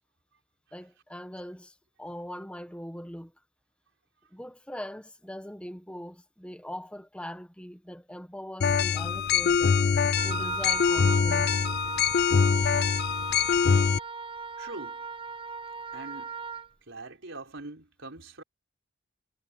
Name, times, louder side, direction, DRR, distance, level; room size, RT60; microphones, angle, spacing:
voice 1, 0.7-3.3 4.3-9.8 10.2-11.9, equal, 5° left, 1.5 m, -41 dB
sound 1, 8.6-14.0, left 6 dB, 50° left, 0.4 m, -24 dB
Wind instrument woodwind instrument, 10.2-16.7, right 6 dB, 25° right, 1.0 m, -37 dB
voice 2, 14.6-15.0 15.9-16.3 16.9-18.4, right 2 dB, 65° right, 5.1 m, -42 dB
head